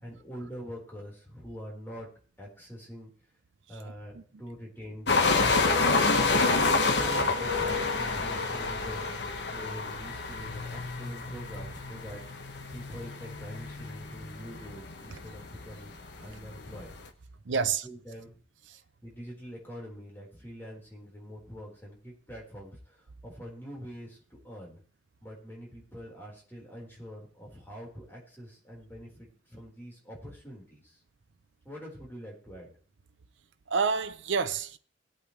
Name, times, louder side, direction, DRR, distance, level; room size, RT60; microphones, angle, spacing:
voice 1, 0.0-2.1 2.4-3.1 3.7-5.8 6.4-9.0 9.5-12.2 12.7-16.9 17.8-18.4 19.0-23.0 23.2-24.8 25.2-31.0 31.6-32.7, equal, 10° left, 4.3 m, -44 dB
sound 1, 5.1-17.1, left 3 dB, 70° left, 1.3 m, -29 dB
voice 2, 17.5-17.9 18.7-18.8 33.7-34.8, right 5 dB, 85° right, 0.6 m, -28 dB
19.5 x 8.4 x 3.2 m
head